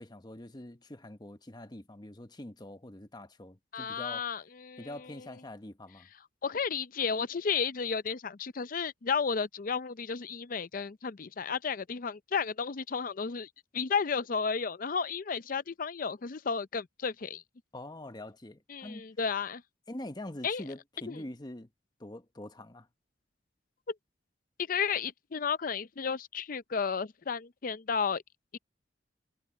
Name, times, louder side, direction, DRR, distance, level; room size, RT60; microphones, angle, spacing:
voice 1, 0.0-4.3 4.8-6.1 17.7-19.0 19.9-21.7 22.0-22.9, left 1 dB, 20° left, 1.0 m, -44 dB
voice 2, 3.7-4.9 6.4-17.4 18.7-19.6 20.4-20.6 21.1-21.2 24.7-28.2, left 6 dB, 45° left, 0.5 m, -33 dB
head